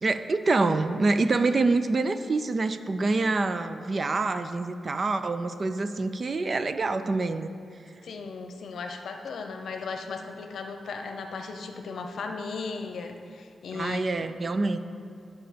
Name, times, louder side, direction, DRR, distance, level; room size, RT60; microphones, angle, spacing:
voice 1, 0.0-7.5 13.7-14.8, right 3 dB, 30° right, 10 dB, 0.3 m, -26 dB
voice 2, 8.0-14.3, left 4 dB, 70° left, 5 dB, 0.7 m, -36 dB
10.0 x 5.7 x 5.1 m, 2.4 s
wide cardioid pair, 180°, 0 cm